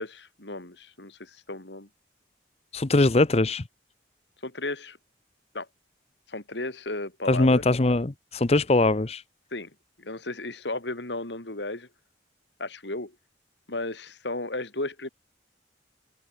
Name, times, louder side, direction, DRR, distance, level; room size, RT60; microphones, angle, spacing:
voice 1, 0.0-1.9 4.4-5.0 5.5-5.7 6.3-7.6 9.5-9.7 10.0-11.9 12.6-13.2 13.7-15.1, left 2 dB, 80° left, 3.4 m, -34 dB
voice 2, 2.7-3.6 7.3-9.2, left 2 dB, 35° left, 0.7 m, -21 dB
head